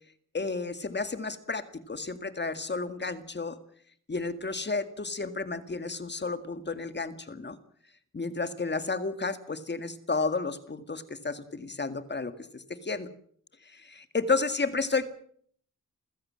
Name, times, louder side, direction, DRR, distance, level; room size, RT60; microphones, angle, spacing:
voice 1, 0.3-3.6 4.1-7.6 8.1-13.1 13.7-15.1, left 3 dB, 35° left, 10 dB, 2.0 m, -32 dB
28.0 x 15.5 x 7.6 m, 0.63 s
wide cardioid pair, 105°, 31 cm